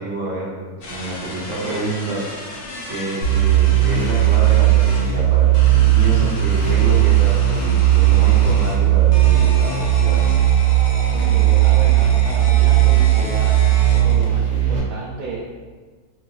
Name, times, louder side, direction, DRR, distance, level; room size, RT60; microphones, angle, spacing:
voice 1, 0.0-2.2 2.9-5.5 5.8-10.2, right 2 dB, 60° right, -7 dB, 1.2 m, -28 dB
sound 1, 0.8-5.1 5.5-8.8 9.1-14.3, left 1 dB, 80° left, 1.1 m, -33 dB
sound 2, 3.2-14.8, right 13 dB, 35° right, 1.5 m, -16 dB
voice 2, 11.1-13.6 14.0-15.4, right 3 dB, 80° right, -4 dB, 1.1 m, -33 dB
3.2 x 2.9 x 2.2 m, 1.4 s
omnidirectional pair, 1.6 m